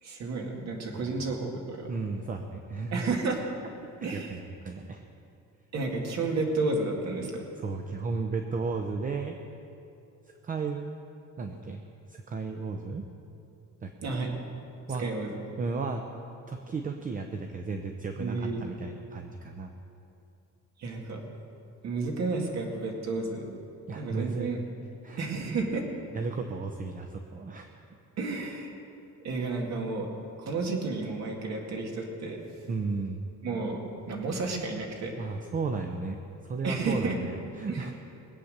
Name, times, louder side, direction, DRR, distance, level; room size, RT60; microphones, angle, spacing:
voice 1, 0.0-1.9 2.9-3.5 4.0-4.3 5.7-7.5 14.0-14.3 15.0-15.4 18.2-18.6 20.8-21.2 21.8-23.4 23.9-24.6 25.2-25.9 28.2-28.8 29.2-30.1 30.4-32.4 33.4-33.8 34.1-35.1 36.6-37.2 37.7-37.9, right 3 dB, 55° right, 1 dB, 2.3 m, -31 dB
voice 2, 1.9-3.1 4.0-5.0 7.6-9.4 10.4-10.9 11.4-11.8 12.1-13.0 13.8-14.2 14.9-15.0 15.6-16.0 16.5-19.7 23.9-24.5 25.0-25.3 26.1-27.7 32.7-33.2 35.2-37.9, right 4 dB, 25° right, 5 dB, 0.6 m, -34 dB
21.5 x 8.6 x 6.6 m, 2.7 s
cardioid pair, 180°, 32 cm